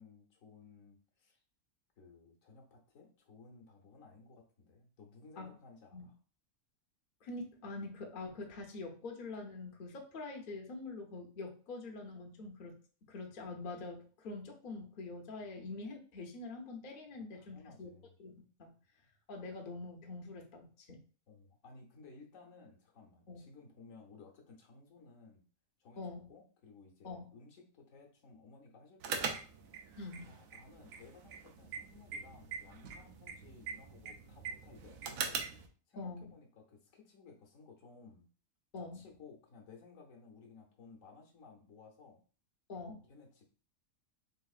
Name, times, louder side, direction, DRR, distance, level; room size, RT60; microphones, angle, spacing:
voice 1, 0.0-1.4 2.0-6.2 17.3-18.2 21.3-25.4 25.8-29.4 30.3-35.5 35.9-38.3 38.8-42.2 43.1-43.4, left 4 dB, 70° left, 1 dB, 1.2 m, -57 dB
voice 2, 7.2-12.7 13.1-17.9 18.2-18.7 19.3-21.0 23.3-23.4 26.0-26.3 27.0-27.3 30.0-30.3 36.0-36.3 38.7-39.0 42.7-43.0, left 3 dB, 50° left, 2 dB, 0.7 m, -45 dB
sound 1, 29.0-35.7, right 5 dB, 80° right, 1.0 m, -42 dB
3.9 x 3.4 x 2.4 m, 0.39 s
omnidirectional pair, 1.4 m